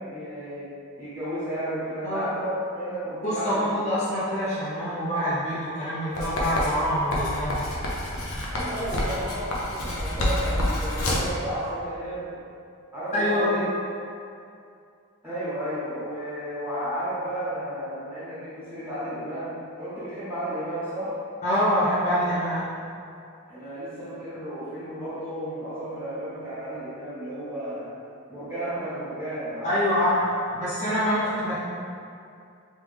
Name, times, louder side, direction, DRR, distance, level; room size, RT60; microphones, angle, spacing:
voice 1, 0.0-3.7 8.5-12.4 12.9-13.7 15.2-21.2 23.5-27.9 28.3-30.0, right 1 dB, 10° right, -13 dB, 1.5 m, -33 dB
voice 2, 3.2-7.6 13.1-13.5 21.4-22.7 29.6-31.6, equal, 35° left, -11 dB, 0.8 m, -25 dB
Writing, 6.2-11.4, left 1 dB, 80° left, 0.7 m, -28 dB
3.3 x 3.2 x 3.5 m, 2.5 s
head